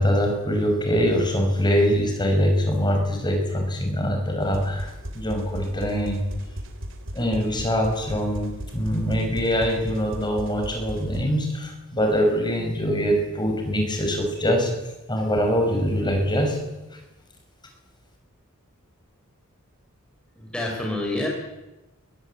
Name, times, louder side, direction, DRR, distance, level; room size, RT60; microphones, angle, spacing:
voice 1, 0.0-6.2 7.1-14.7 15.1-16.6, equal, 20° left, 3 dB, 6.3 m, -23 dB
sound 1, 4.4-11.2, equal, 65° right, 2.9 m, -36 dB
voice 2, 20.3-21.3, left 1 dB, 5° left, -2 dB, 5.0 m, -27 dB
23.5 x 20.5 x 8.5 m, 1.0 s
head